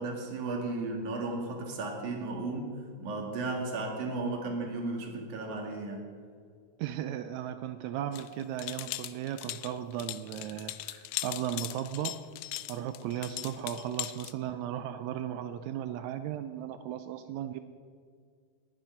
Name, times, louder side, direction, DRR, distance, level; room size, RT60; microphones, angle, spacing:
voice 1, 0.0-2.7 3.0-6.1, right 3 dB, 65° right, 1 dB, 3.2 m, -34 dB
voice 2, 6.8-12.2 12.7-17.6, right 10 dB, 85° right, 10 dB, 1.6 m, -36 dB
sound 1, 8.1-14.3, left 17 dB, 80° left, 2.0 m, -39 dB
19.5 x 10.0 x 4.4 m, 2.1 s
omnidirectional pair, 3.9 m